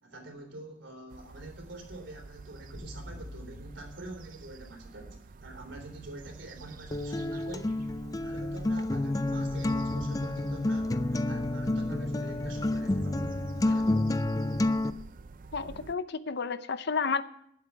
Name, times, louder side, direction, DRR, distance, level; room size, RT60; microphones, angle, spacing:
voice 1, 0.0-7.7 8.2-11.0 11.2-13.3 13.6-14.1, right 2 dB, 70° right, 3 dB, 3.5 m, -45 dB
sound 1, 1.1-15.9, right 3 dB, 45° right, 0.4 m, -47 dB
sound 2, 2.7-4.9, left 1 dB, 40° left, 3.8 m, -47 dB
Acoustic guitar, 6.9-14.9, left 2 dB, 20° left, 0.4 m, -29 dB
voice 2, 15.5-17.2, left 5 dB, 60° left, 13 dB, 0.7 m, -31 dB
10.5 x 8.0 x 8.7 m, 0.71 s
head